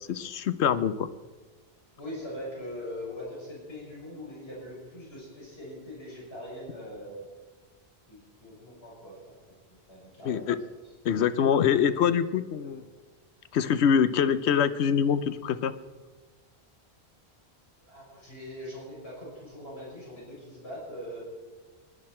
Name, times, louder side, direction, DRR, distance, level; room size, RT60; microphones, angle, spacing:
voice 1, 0.1-1.1 10.2-10.6 11.0-12.8 13.5-15.7, left 8 dB, 90° left, 13 dB, 1.0 m, -24 dB
voice 2, 2.0-7.2 8.1-9.2 9.7-10.5 12.6-12.8 17.9-21.2, equal, 70° left, -6 dB, 5.9 m, -42 dB
21.0 x 10.5 x 4.4 m, 1.3 s
omnidirectional pair, 1.1 m